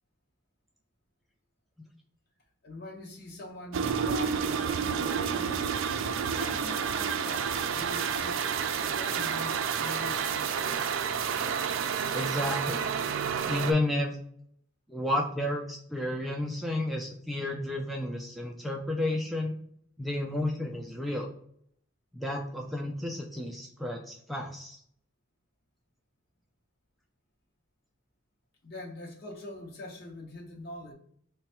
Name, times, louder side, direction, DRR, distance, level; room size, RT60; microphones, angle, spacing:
voice 1, 2.6-5.7 6.2-8.4 8.8-10.6 28.6-30.9, left 1 dB, 50° left, 0.8 m, -43 dB
sound 1, 3.7-13.7, right 7 dB, 85° right, 0.4 m, -30 dB
voice 2, 12.1-12.8 13.5-14.2 14.9-19.5 20.0-21.3 22.1-24.8, left 1 dB, ahead, 0.3 m, -31 dB
3.4 x 2.2 x 4.2 m
head